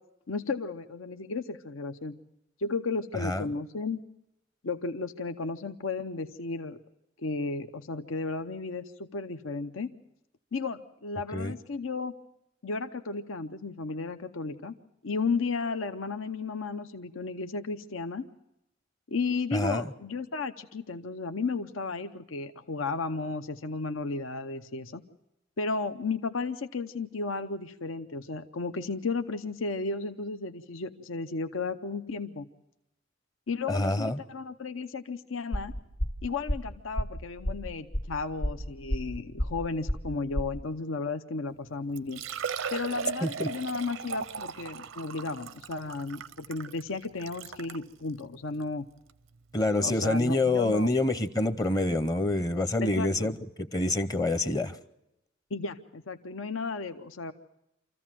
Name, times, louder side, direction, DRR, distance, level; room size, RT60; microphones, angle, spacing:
voice 1, 0.3-2.2 2.6-4.0 4.6-6.8 7.2-9.9 10.5-12.1 12.6-14.7 15.0-18.3 19.1-25.0 25.6-32.5 33.5-35.7 36.2-42.2 42.7-48.9 49.8-50.9 52.8-53.3 55.5-57.3, left 4 dB, 85° left, 9 dB, 0.8 m, -34 dB
voice 2, 19.5-19.9 33.7-34.2 43.2-43.5 49.5-54.8, left 2 dB, 20° left, 12 dB, 0.7 m, -27 dB
sound 1, 35.5-40.6, equal, 60° left, 1.7 m, -31 dB
Liquid, 41.5-41.6 42.0-47.8 48.5-48.6 49.1-49.2 50.8-50.9 51.1-51.2, right 6 dB, 85° right, 0.7 m, -37 dB
26.5 x 14.5 x 7.5 m, 0.88 s
head